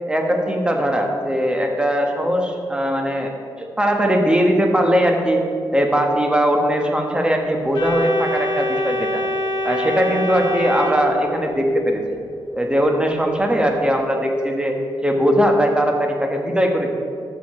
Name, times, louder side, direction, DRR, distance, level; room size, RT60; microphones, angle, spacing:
voice 1, 0.1-5.4 5.7-9.2 9.6-12.0 12.5-14.8 15.0-17.0, equal, 10° right, 2 dB, 1.4 m, -20 dB
Organ, 7.7-11.7, left 1 dB, 75° left, 2.1 m, -24 dB
13.5 x 6.9 x 3.2 m, 2.4 s
cardioid pair, 70°, 9 cm